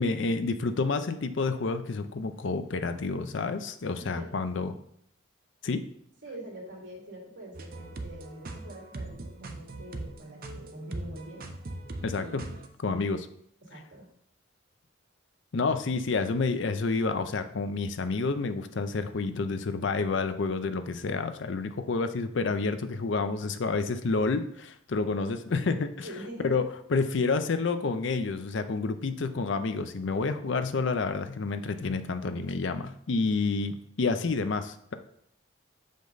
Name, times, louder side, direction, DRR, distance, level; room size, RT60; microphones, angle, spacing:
voice 1, 0.0-4.7 5.6-5.8 12.0-12.2 12.8-13.2 15.5-26.1 26.4-26.6 26.9-34.9, left 4 dB, 65° left, 10 dB, 0.5 m, -29 dB
voice 2, 3.9-4.6 6.2-11.4 12.2-12.4 12.8-13.0 13.6-14.1 26.0-26.6, right 1 dB, 65° right, -3 dB, 2.6 m, -44 dB
sound 1, 7.5-12.7, right 2 dB, 45° right, 0.7 m, -40 dB
6.5 x 5.2 x 3.9 m, 0.70 s
head